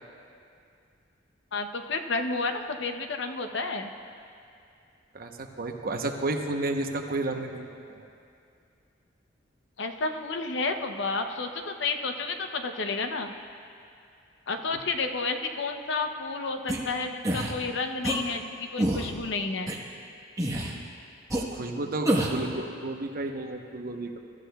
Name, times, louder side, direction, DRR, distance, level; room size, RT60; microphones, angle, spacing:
voice 1, 1.5-3.9 9.8-13.3 14.5-19.7, left 3 dB, 70° left, 6 dB, 0.7 m, -31 dB
voice 2, 5.1-8.1 21.5-24.2, right 2 dB, 50° right, 3 dB, 0.9 m, -32 dB
sound 1, 16.7-16.8 17.2-17.5 18.0-18.2 18.8-19.1 19.7-19.8 20.4-20.8 21.3-21.4 22.1-22.4, right 1 dB, 20° right, 1.2 m, -26 dB
22.0 x 13.0 x 2.3 m, 2.5 s
head